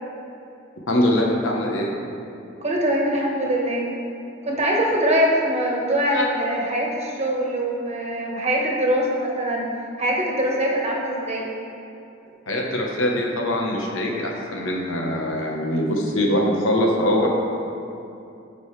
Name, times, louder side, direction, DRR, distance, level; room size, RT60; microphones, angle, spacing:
voice 1, 0.9-1.9 6.1-6.2 12.5-17.3, left 1 dB, 85° left, -1 dB, 1.2 m, -22 dB
voice 2, 2.6-3.9 4.4-9.7 10.0-11.5, right 1 dB, 35° right, -2 dB, 1.3 m, -23 dB
14.0 x 5.3 x 3.3 m, 2.7 s
head